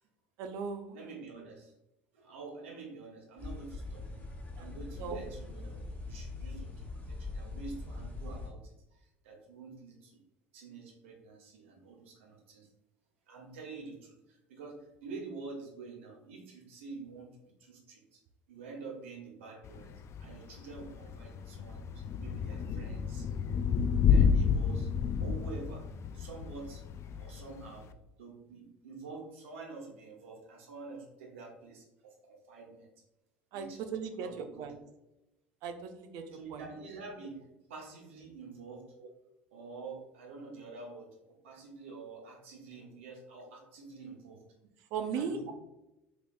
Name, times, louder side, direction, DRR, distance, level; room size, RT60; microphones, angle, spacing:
voice 1, 0.4-1.0 4.6-5.2 33.5-34.8 35.6-36.2 36.5-36.6 39.0-39.1 44.9-45.5, right 6 dB, 60° right, 6 dB, 0.5 m, -38 dB
voice 2, 0.9-1.7 2.1-4.2 4.6-10.2 10.5-12.7 13.3-18.2 18.5-19.9 20.2-23.3 24.1-24.9 25.2-25.8 26.1-26.8 27.2-27.9 28.2-32.9 33.5-33.8 34.1-34.7 36.3-37.4 37.7-38.8 39.5-44.4 45.0-45.5, right 4 dB, 75° right, 0 dB, 1.0 m, -47 dB
sound 1, 3.4-8.5, left 3 dB, 20° left, 1.2 m, -42 dB
Thunder / Rain, 19.6-27.9, left 6 dB, 40° left, 0.3 m, -30 dB
3.6 x 3.5 x 2.5 m, 0.93 s
hypercardioid pair, 65°, 7 cm